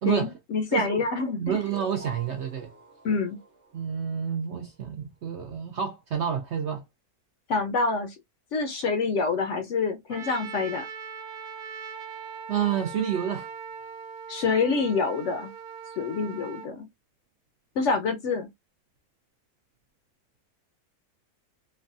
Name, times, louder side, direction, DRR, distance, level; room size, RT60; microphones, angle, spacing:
voice 1, 0.0-1.6 3.0-3.4 7.5-8.2 8.5-10.8 14.3-15.5 16.0-16.9 17.8-18.5, left 4 dB, 65° left, 0.8 m, -27 dB
voice 2, 0.7-1.0 1.4-2.7 3.7-6.8 12.5-13.5, right 8 dB, 65° right, 0.7 m, -29 dB
sound 1, 1.5-4.7, right 3 dB, 40° right, 1.1 m, -46 dB
Trumpet, 10.1-16.7, right 6 dB, 85° right, 1.2 m, -40 dB
3.3 x 2.2 x 2.5 m
omnidirectional pair, 1.6 m